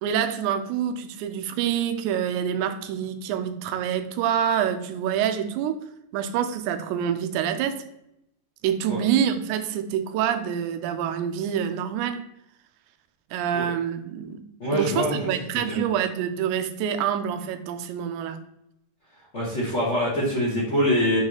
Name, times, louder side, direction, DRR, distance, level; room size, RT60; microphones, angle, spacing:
voice 1, 0.0-5.8 6.1-7.8 8.6-12.2 13.3-14.4 14.7-18.4, right 9 dB, 80° right, 2.0 m, -26 dB
voice 2, 14.6-15.3 15.7-15.8 19.3-21.2, equal, 65° left, 0.7 m, -24 dB
7.9 x 3.1 x 3.8 m
omnidirectional pair, 3.7 m